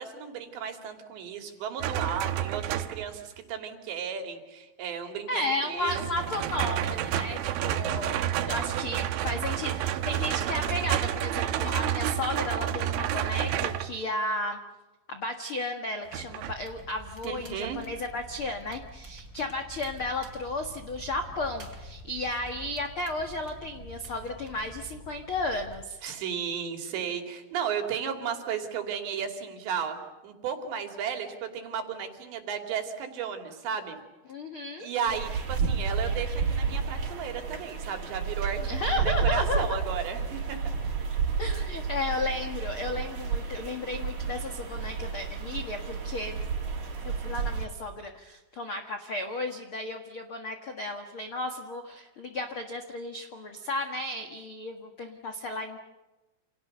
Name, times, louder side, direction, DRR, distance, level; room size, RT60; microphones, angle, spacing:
voice 1, 0.0-6.0 17.2-17.8 26.0-30.0 30.2-34.0 34.8-38.6 39.1-40.6, right 7 dB, 70° right, 5 dB, 4.9 m, -34 dB
sound 1, 1.8-3.2 5.8-13.9 16.1-16.5, right 11 dB, 90° right, 3.6 m, -30 dB
voice 2, 5.3-14.6 15.1-26.0 34.3-34.9 38.6-39.8 41.4-46.4 47.0-55.8, left 2 dB, 70° left, 5 dB, 1.2 m, -34 dB
Crackle, 16.4-25.8, right 1 dB, 20° right, 4.7 m, -47 dB
sound 2, 35.1-47.7, right 5 dB, 45° right, 4.6 m, -31 dB
29.0 x 28.5 x 6.7 m, 1.1 s
omnidirectional pair, 5.2 m